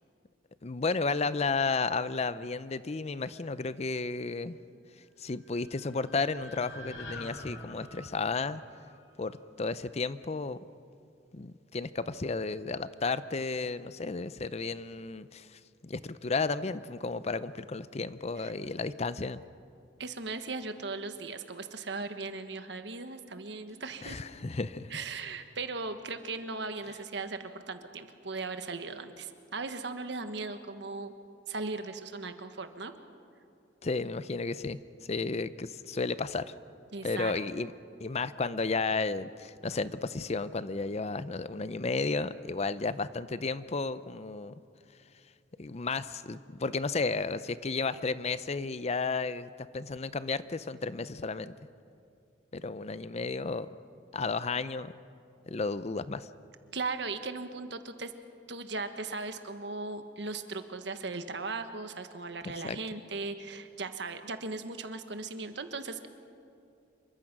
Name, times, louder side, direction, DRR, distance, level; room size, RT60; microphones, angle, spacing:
voice 1, 0.6-4.6 5.2-8.6 9.2-10.6 11.3-19.4 24.0-24.9 33.8-34.8 35.1-36.5 37.0-37.7 38.0-44.5 45.6-51.5 52.5-53.7 54.1-54.9 55.5-56.3 62.6-62.8, left 4 dB, 35° left, 15 dB, 0.6 m, -33 dB
sound 1, 5.3-9.5, left 1 dB, 75° left, 3.1 m, -47 dB
voice 2, 20.0-24.2 24.9-31.1 31.5-32.9 36.9-37.3 56.7-58.1 58.5-66.1, right 3 dB, 65° right, 8 dB, 1.5 m, -38 dB
27.0 x 23.5 x 6.0 m, 2.6 s
head